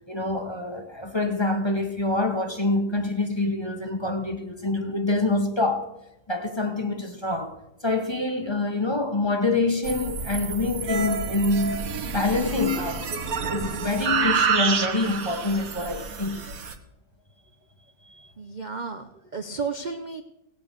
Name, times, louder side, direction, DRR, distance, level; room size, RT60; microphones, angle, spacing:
voice 1, 0.1-5.9 6.3-7.6 7.8-13.1 13.5-16.4 18.0-18.3, left 2 dB, 20° left, 1.1 m, -26 dB
sound 1, 9.8-16.7, right 5 dB, 70° right, 1.6 m, -28 dB
voice 2, 18.4-20.2, right 4 dB, 40° right, 0.7 m, -33 dB
17.5 x 8.3 x 6.7 m
omnidirectional pair, 1.5 m